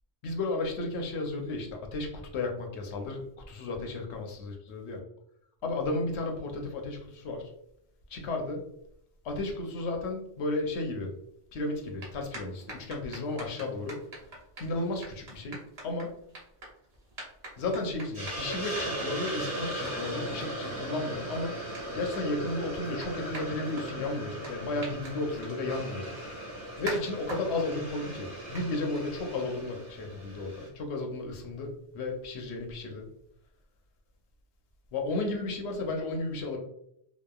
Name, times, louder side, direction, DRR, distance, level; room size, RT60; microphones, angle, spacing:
voice 1, 0.2-5.0 5.6-7.5 8.1-8.6 9.2-11.1 11.5-14.0 14.6-16.1 17.6-21.6 21.9-26.1 26.8-33.1 34.9-36.6, left 2 dB, 75° left, 2 dB, 0.8 m, -33 dB
sound 1, 11.7-29.5, right 1 dB, 65° right, 1.1 m, -47 dB
Hiss, 18.1-30.7, right 1 dB, 35° right, 1.0 m, -38 dB
2.9 x 2.0 x 2.2 m, 0.73 s
omnidirectional pair, 1.2 m